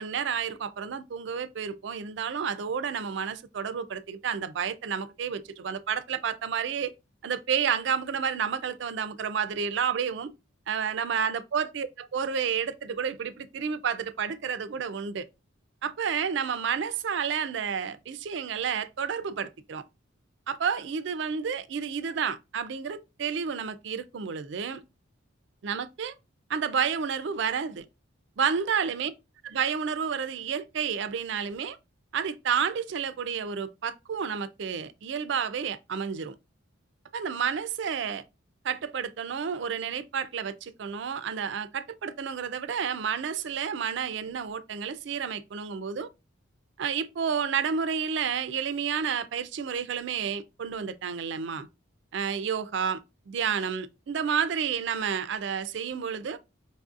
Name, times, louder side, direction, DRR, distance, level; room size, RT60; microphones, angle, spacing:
voice 1, 0.0-6.9 7.2-10.3 10.7-15.3 15.8-19.8 20.5-24.8 25.6-26.1 26.5-27.9 28.4-29.1 29.5-31.8 32.1-36.3 37.1-38.2 38.6-46.1 46.8-51.7 52.1-56.4, right 7 dB, 60° right, 0.4 m, -30 dB
5.2 x 2.5 x 2.4 m
head